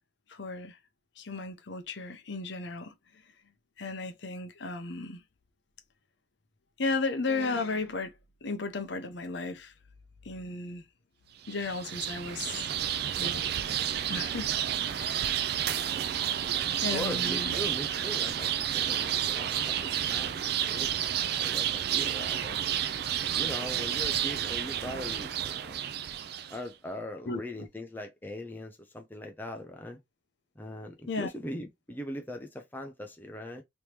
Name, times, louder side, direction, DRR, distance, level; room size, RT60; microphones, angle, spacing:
voice 1, 0.3-0.8 1.2-2.9 3.8-5.2 6.8-8.1 8.4-9.7 10.2-10.8 11.5-12.8 13.2-13.4 14.1-14.5 15.0-15.3 16.8-17.5 27.3-27.7 31.1-31.3, left 3 dB, 60° left, 0.7 m, -34 dB
sound 1, 11.4-26.6, right 10 dB, 55° right, 0.3 m, -31 dB
voice 2, 16.9-22.6 23.3-25.8 26.5-30.0 30.6-33.6, left 1 dB, 10° left, 0.5 m, -40 dB
3.5 x 3.0 x 2.9 m
head